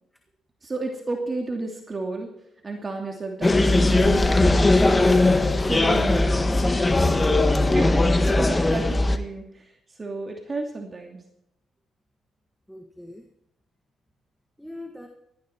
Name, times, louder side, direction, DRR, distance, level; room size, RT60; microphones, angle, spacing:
voice 1, 0.6-2.3 2.6-5.2 5.7-6.4 7.8-9.7 10.0-11.2, right 3 dB, 30° right, 1 dB, 2.7 m, -32 dB
sound 1, 3.4-9.2, left 2 dB, 20° left, 1.5 m, -19 dB
voice 2, 6.8-7.7 12.7-13.3 14.6-15.1, left 1 dB, ahead, 4 dB, 1.8 m, -39 dB
18.5 x 14.0 x 4.6 m, 0.78 s
cardioid pair, 90°, 0 cm